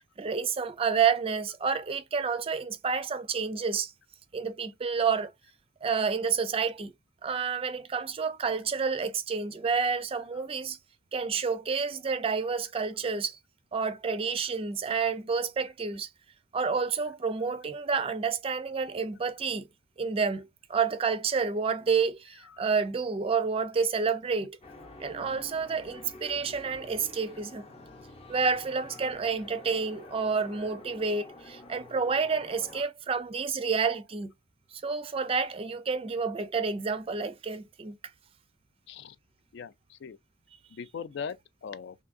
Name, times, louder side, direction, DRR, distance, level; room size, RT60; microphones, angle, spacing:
voice 1, 0.2-3.9 4.3-5.3 5.8-6.9 7.2-10.8 11.1-13.4 13.7-16.1 16.5-19.7 20.0-24.6 25.0-27.7 28.3-34.3 34.8-37.9, right 5 dB, 30° right, 0.4 m, -29 dB
sound 1, 24.6-32.8, left 2 dB, 30° left, 0.7 m, -48 dB
voice 2, 39.5-40.2 40.7-41.9, left 6 dB, 60° left, 0.3 m, -40 dB
3.5 x 2.7 x 2.5 m
head